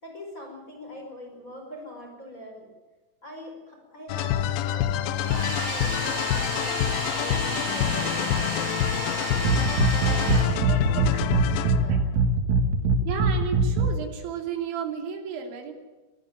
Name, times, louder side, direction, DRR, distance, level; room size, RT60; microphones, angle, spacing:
voice 1, 0.0-2.7 3.2-7.4 7.7-9.6 10.0-12.1, equal, 20° left, 2 dB, 5.2 m, -42 dB
sound 1, 4.1-12.0, left 11 dB, 80° left, 2.0 m, -27 dB
Domestic sounds home sounds, 5.1-11.0, equal, 20° right, 6.1 m, -32 dB
sound 2, 9.4-14.0, right 3 dB, 60° right, 2.2 m, -23 dB
voice 2, 10.6-11.3 13.1-15.7, right 6 dB, 85° right, 2 dB, 5.2 m, -33 dB
24.0 x 14.5 x 9.1 m, 1.2 s
omnidirectional pair, 5.1 m